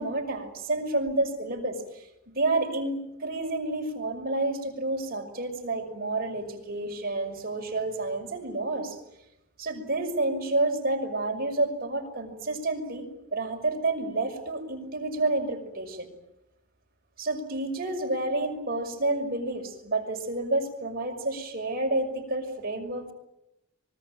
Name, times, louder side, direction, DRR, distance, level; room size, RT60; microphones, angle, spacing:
voice 1, 0.0-9.0 9.6-16.1 17.2-23.1, right 2 dB, 50° right, 3 dB, 5.9 m, -29 dB
24.5 x 23.0 x 9.3 m, 0.88 s
head